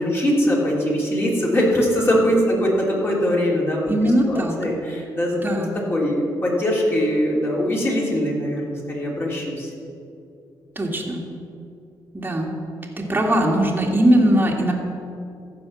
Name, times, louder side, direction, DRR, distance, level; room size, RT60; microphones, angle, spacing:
voice 1, 0.0-3.9 4.3-5.4 5.9-9.7, equal, 30° left, -3 dB, 3.1 m, -21 dB
voice 2, 3.9-4.6 5.4-5.7 10.8-11.2 12.1-12.5 13.0-14.7, right 1 dB, 25° right, -2 dB, 1.8 m, -20 dB
14.5 x 4.9 x 7.1 m, 2.5 s
cardioid pair, 85°, 8 cm